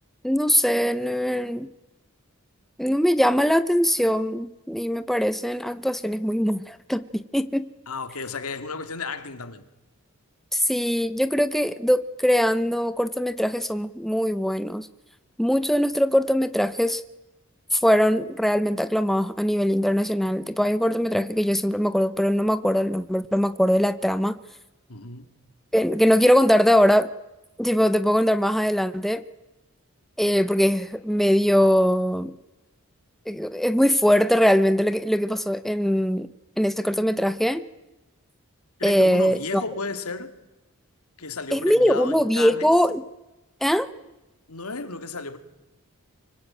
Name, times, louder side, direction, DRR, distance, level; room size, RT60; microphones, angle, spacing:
voice 1, 0.2-1.7 2.8-7.7 10.5-14.9 15.4-17.0 17.7-24.4 25.7-27.1 27.6-29.2 30.2-32.4 33.3-36.3 36.6-37.6 38.8-39.6 41.5-43.0 43.6-43.9, equal, ahead, 0.8 m, -21 dB
voice 2, 7.9-9.6 24.9-25.3 38.8-40.3 41.2-42.7 44.5-45.4, left 3 dB, 90° left, 2.4 m, -33 dB
25.5 x 24.0 x 8.9 m
head